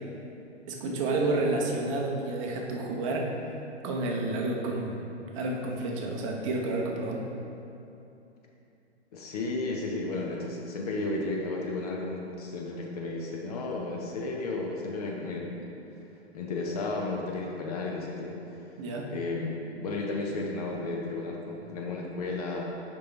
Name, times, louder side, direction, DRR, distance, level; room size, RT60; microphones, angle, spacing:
voice 1, 0.7-3.3 3.8-5.0 5.3-7.3 18.8-19.1, right 2 dB, 30° right, 0 dB, 0.8 m, -30 dB
voice 2, 9.1-15.8 16.3-18.4 19.1-22.6, left 2 dB, 35° left, -1 dB, 0.7 m, -33 dB
6.6 x 5.3 x 3.3 m, 2.8 s
figure-of-eight pair, 115°, 34 cm